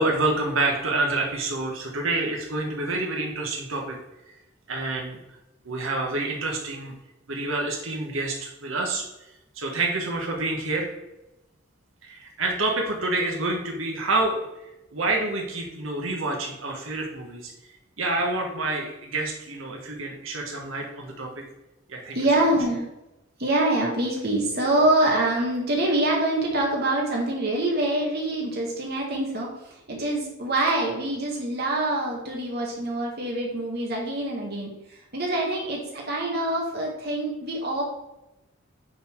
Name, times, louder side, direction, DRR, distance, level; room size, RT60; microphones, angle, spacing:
voice 1, 0.0-4.0 4.7-5.2 5.6-6.9 7.3-9.0 9.5-10.9 12.0-14.4 14.9-17.5 18.0-21.4 21.9-22.2, right 2 dB, 80° right, 0 dB, 1.4 m, -27 dB
voice 2, 22.1-22.9 23.4-34.7 35.1-37.8, right 1 dB, 50° right, -2 dB, 1.7 m, -25 dB
9.3 x 4.2 x 4.6 m, 0.94 s
head